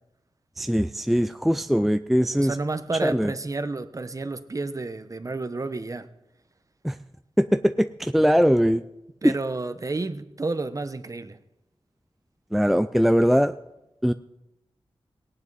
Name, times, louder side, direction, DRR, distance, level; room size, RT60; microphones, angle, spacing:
voice 1, 0.6-2.6 3.0-3.3 6.8-7.0 7.4-8.8 9.2-9.3 12.5-13.5 14.0-14.1, equal, ahead, 10 dB, 0.4 m, -21 dB
voice 2, 2.4-6.1 9.2-11.4 13.3-13.4, right 3 dB, 35° right, 10 dB, 1.0 m, -31 dB
18.5 x 18.0 x 4.1 m, 0.93 s
wide cardioid pair, 95°, 10 cm